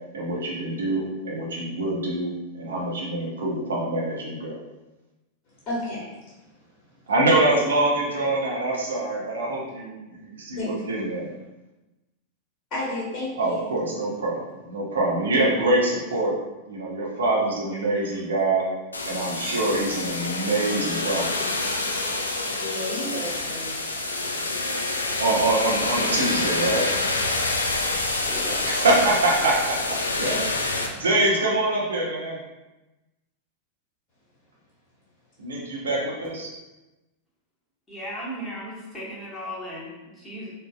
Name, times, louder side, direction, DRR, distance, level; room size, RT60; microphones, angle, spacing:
voice 1, 0.1-2.3 2.5-4.6 7.1-11.3 13.4-16.4 16.7-18.6 19.1-21.3 25.2-26.9 28.6-30.4 30.9-32.4 35.4-36.5, right 2 dB, 65° right, -3 dB, 0.8 m, -24 dB
voice 2, 5.6-6.0 10.6-10.7 12.7-13.7 17.9-18.2 22.4-23.8 28.2-28.6 30.2-30.4 31.1-31.2, left 1 dB, 35° left, -8 dB, 1.2 m, -32 dB
sound 1, 18.9-30.9, left 2 dB, 75° left, 0.3 m, -27 dB
voice 3, 37.9-40.5, equal, 10° left, -7 dB, 1.2 m, -36 dB
3.8 x 2.6 x 2.2 m, 1.0 s
figure-of-eight pair, 90°, 0 cm